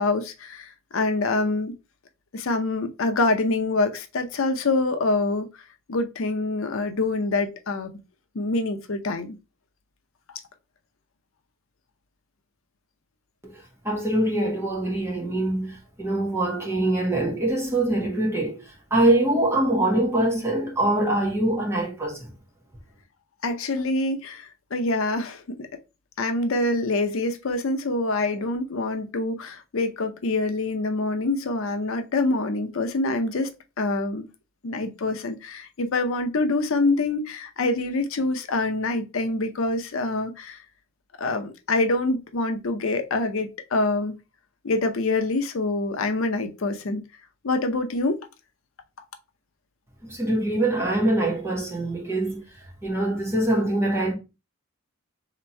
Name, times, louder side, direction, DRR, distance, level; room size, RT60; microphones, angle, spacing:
voice 1, 0.0-1.7 2.3-5.5 5.9-8.0 8.3-9.4 10.3-10.4 23.4-25.7 26.2-33.5 33.8-34.2 34.6-40.6 41.2-44.1 44.6-47.0 47.4-48.2, left 2 dB, 80° left, 0.6 m, -25 dB
voice 2, 13.5-22.3 50.0-54.1, right 1 dB, 10° right, 1.2 m, -24 dB
3.4 x 2.9 x 4.3 m
head